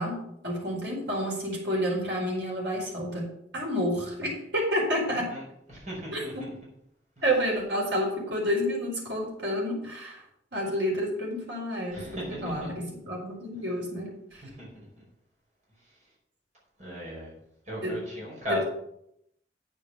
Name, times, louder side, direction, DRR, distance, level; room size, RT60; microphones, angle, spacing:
voice 1, 0.0-5.3 6.1-6.5 7.2-10.2 10.5-14.4 17.8-18.0 18.5-18.6, equal, 75° right, -1 dB, 4.8 m, -30 dB
voice 2, 5.7-6.5 11.9-12.6 14.3-15.0 16.8-17.3 17.7-18.6, equal, 45° right, -4 dB, 5.0 m, -36 dB
9.3 x 7.1 x 7.0 m, 0.75 s
head